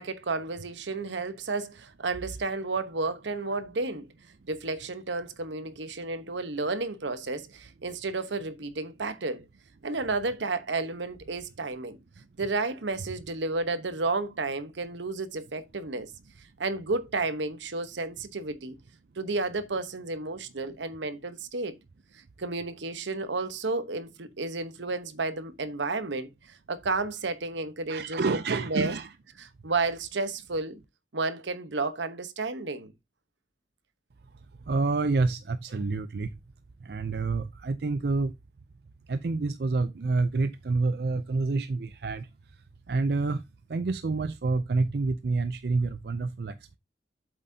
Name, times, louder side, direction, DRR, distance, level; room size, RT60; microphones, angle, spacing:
voice 1, 0.0-4.1 4.5-9.5 9.8-12.0 12.4-16.1 16.6-18.8 19.2-21.7 22.4-28.9 29.4-30.8 31.1-32.9, right 3 dB, 80° right, 1.0 m, -32 dB
voice 2, 27.9-29.1 34.7-36.3 36.8-38.3 39.1-42.3 42.9-43.4 43.7-46.8, right 3 dB, 60° right, 0.4 m, -28 dB
8.0 x 7.4 x 2.7 m
head